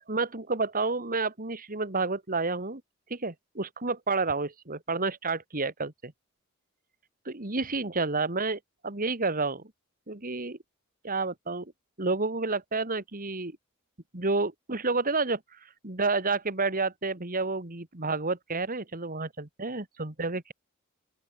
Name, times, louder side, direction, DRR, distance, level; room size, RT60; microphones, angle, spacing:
voice 1, 0.0-2.8 3.1-6.1 7.3-9.6 10.1-10.6 11.0-11.7 12.0-13.5 14.1-20.5, right 3 dB, 40° right, 2.5 m, -30 dB
open air
head